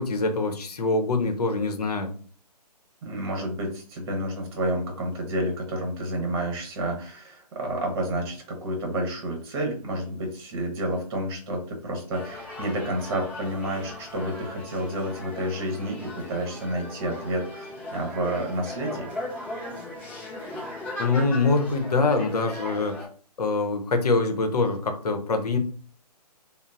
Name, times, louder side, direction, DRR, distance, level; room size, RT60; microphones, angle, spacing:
voice 1, 0.0-2.1 21.0-23.0 23.4-25.6, left 3 dB, 65° left, 6 dB, 0.7 m, -24 dB
voice 2, 3.0-19.1, right 1 dB, 35° right, 2 dB, 0.9 m, -30 dB
sound 1, 12.1-23.1, left 1 dB, 5° left, 0.3 m, -38 dB
3.7 x 2.0 x 2.3 m, 0.43 s
figure-of-eight pair, 140°, 21 cm